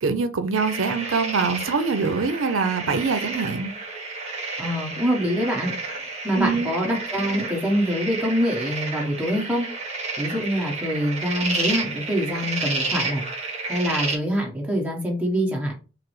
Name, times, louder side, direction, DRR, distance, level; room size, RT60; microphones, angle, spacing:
voice 1, 0.0-3.7 6.4-6.7, right 4 dB, 85° right, 0.5 m, -24 dB
sound 1, 0.5-14.2, right 3 dB, 35° right, 1.2 m, -31 dB
voice 2, 4.6-9.7 10.2-13.2 13.7-15.7, equal, 5° right, 1.1 m, -25 dB
4.7 x 2.0 x 4.7 m
head